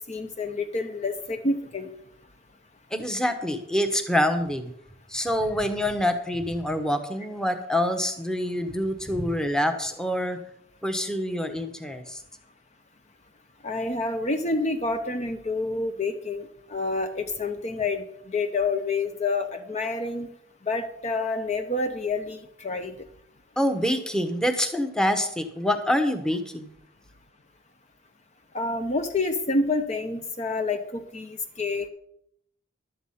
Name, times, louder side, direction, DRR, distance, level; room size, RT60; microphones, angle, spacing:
voice 1, 0.1-1.9 13.6-20.3 20.6-22.9 28.5-31.9, left 3 dB, 35° left, 6 dB, 0.7 m, -28 dB
voice 2, 2.9-4.7 5.1-10.4 10.8-12.2 23.6-26.7, left 1 dB, 5° left, 6 dB, 1.0 m, -26 dB
11.5 x 8.0 x 5.6 m, 0.72 s
head